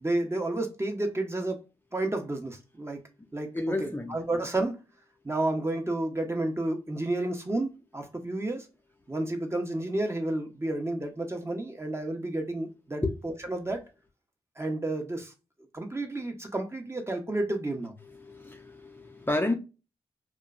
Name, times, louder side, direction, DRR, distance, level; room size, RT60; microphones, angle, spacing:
voice 1, 0.0-1.6 1.9-3.0 3.3-4.8 5.2-8.7 9.1-13.9 14.6-15.3 15.7-18.0, right 2 dB, 20° right, 0.8 m, -31 dB
voice 2, 3.5-4.2 13.0-13.1 18.0-19.5, left 2 dB, 15° left, 0.6 m, -30 dB
2.9 x 2.2 x 2.4 m
supercardioid pair, 50°, 13 cm